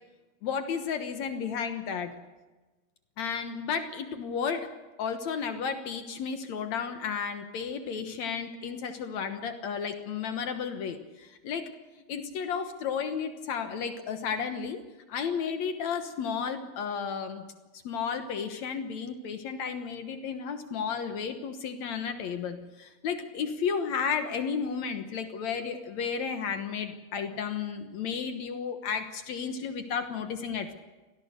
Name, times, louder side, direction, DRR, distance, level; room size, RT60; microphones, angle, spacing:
voice 1, 0.4-2.2 3.2-11.8 12.1-14.8 15.1-17.5 17.8-30.7, left 6 dB, 60° left, 7 dB, 2.0 m, -33 dB
25.5 x 18.0 x 6.7 m, 1.2 s
omnidirectional pair, 4.5 m